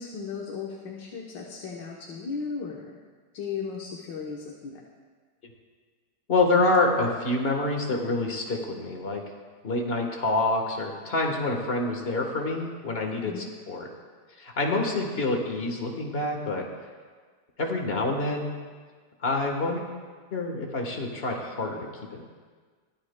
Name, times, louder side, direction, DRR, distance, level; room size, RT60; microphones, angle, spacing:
voice 1, 0.0-3.0 3.3-4.8 13.3-13.5, left 5 dB, 85° left, -1 dB, 1.7 m, -36 dB
voice 2, 6.3-9.2 9.6-13.9 14.4-16.6 17.6-18.5 19.2-19.9 20.3-22.2, left 2 dB, 35° left, 2 dB, 1.4 m, -27 dB
23.5 x 10.0 x 2.2 m, 1.5 s
omnidirectional pair, 1.9 m